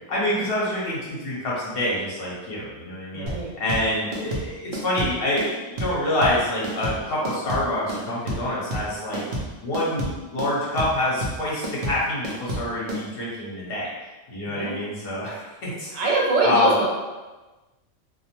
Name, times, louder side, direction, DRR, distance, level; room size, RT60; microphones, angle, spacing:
voice 1, 0.1-3.3 3.6-9.2 9.6-13.9 14.3-15.9 16.4-16.7, left 1 dB, 50° left, -6 dB, 1.0 m, -26 dB
voice 2, 3.1-3.5 14.5-14.8 15.9-16.8, right 3 dB, 85° right, -2 dB, 1.0 m, -23 dB
sound 1, 3.3-13.0, right 1 dB, 55° right, 0.6 m, -30 dB
2.6 x 2.0 x 2.9 m, 1.2 s
omnidirectional pair, 1.3 m